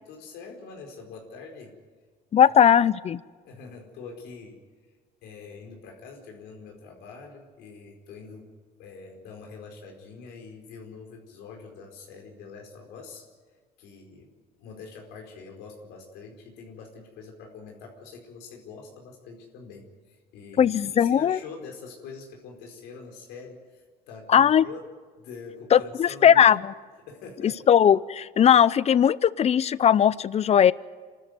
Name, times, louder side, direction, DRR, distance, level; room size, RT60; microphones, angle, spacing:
voice 1, 0.1-1.7 3.4-4.6 5.2-8.5 8.8-13.3 13.8-24.8 25.2-26.6 27.1-27.6, left 4 dB, 90° left, 1 dB, 4.7 m, -44 dB
voice 2, 2.3-3.2 20.6-21.4 24.3-24.6 25.7-26.6 27.4-30.7, left 9 dB, 40° left, 20 dB, 0.6 m, -19 dB
27.5 x 13.0 x 9.4 m, 1.5 s
cardioid pair, 110°, 17 cm